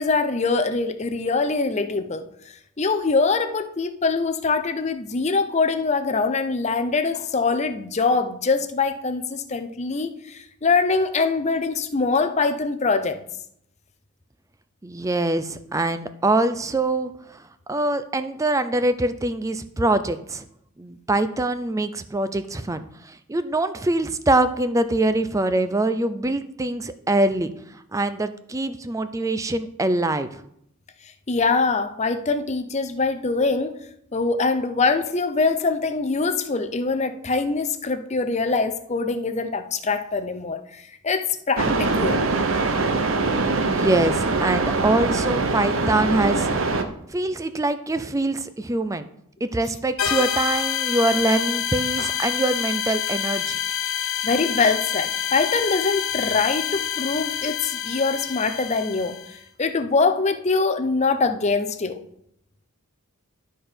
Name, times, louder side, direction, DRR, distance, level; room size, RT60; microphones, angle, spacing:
voice 1, 0.0-2.2 2.8-13.2 31.3-33.7 34.1-40.6 41.0-42.2 52.0-52.1 54.2-59.2 59.6-62.0, left 4 dB, 30° left, 9 dB, 0.6 m, -23 dB
voice 2, 14.8-17.4 17.7-20.4 20.8-30.4 43.7-46.5 47.1-49.1 49.4-53.6, right 2 dB, 15° right, 11 dB, 0.4 m, -24 dB
sound 1, 41.6-46.8, right 3 dB, 65° right, 0.8 m, -23 dB
sound 2, 50.0-59.4, left 9 dB, 75° left, 0.8 m, -27 dB
12.0 x 4.4 x 5.1 m, 0.73 s
head